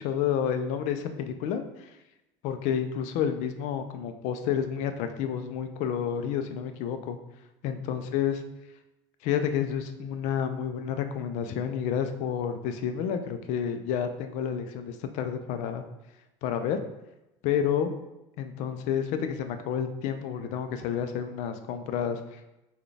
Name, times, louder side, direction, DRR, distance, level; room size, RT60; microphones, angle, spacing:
voice 1, 0.0-1.9 2.4-7.2 7.6-8.4 9.2-15.8 16.4-16.8 17.4-17.9 18.4-22.4, left 8 dB, 60° left, 8 dB, 0.4 m, -30 dB
3.9 x 2.3 x 3.3 m, 0.94 s
cardioid pair, 145°, 14 cm